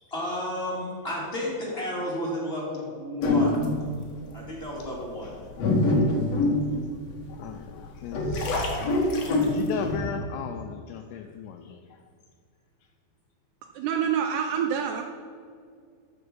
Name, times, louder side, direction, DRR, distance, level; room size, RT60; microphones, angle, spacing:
voice 1, 0.1-3.6 4.3-5.3, left 1 dB, 15° left, -6 dB, 2.4 m, -32 dB
sound 1, 3.2-3.9 4.6-4.7 5.3-7.4 7.9-10.0, left 2 dB, 60° left, 1.7 m, -24 dB
voice 2, 7.3-11.8, left 7 dB, 80° left, 5 dB, 2.4 m, -37 dB
voice 3, 13.8-15.0, right 8 dB, 85° right, 4 dB, 2.5 m, -26 dB
13.0 x 6.9 x 5.5 m, 2.1 s
omnidirectional pair, 5.3 m